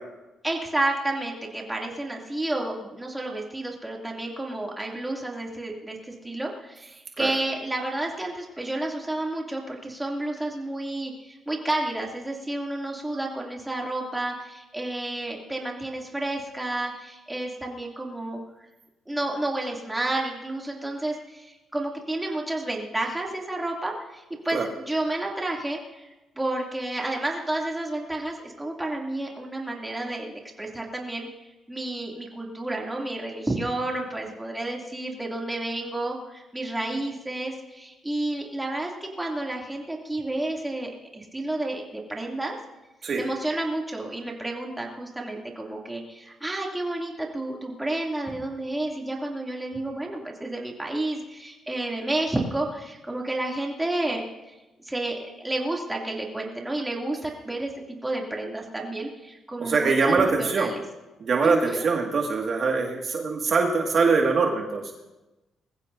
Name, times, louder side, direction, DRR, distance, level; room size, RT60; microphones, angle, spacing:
voice 1, 0.4-18.4 19.1-26.1 26.4-31.3 31.7-38.9 39.2-42.6 43.2-54.5 54.8-60.8 61.4-61.8, right 2 dB, 10° right, -1 dB, 2.7 m, -31 dB
voice 2, 59.6-60.7 61.2-64.8, right 4 dB, 50° right, 0 dB, 2.0 m, -23 dB
21.0 x 15.5 x 2.7 m, 1.0 s
cardioid pair, 90°, 0 cm